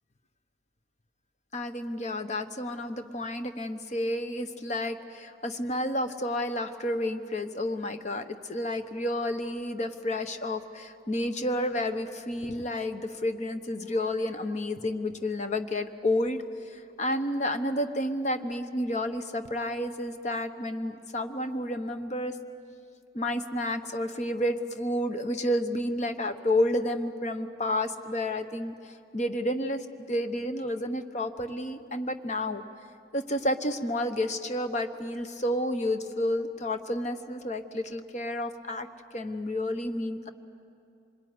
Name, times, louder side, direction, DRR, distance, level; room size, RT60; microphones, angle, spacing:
voice 1, 1.5-16.4 16.7-22.3 23.1-32.6 33.1-38.9 39.1-40.3, left 1 dB, 40° left, 8 dB, 1.1 m, -30 dB
25.5 x 21.5 x 9.7 m, 2.5 s
head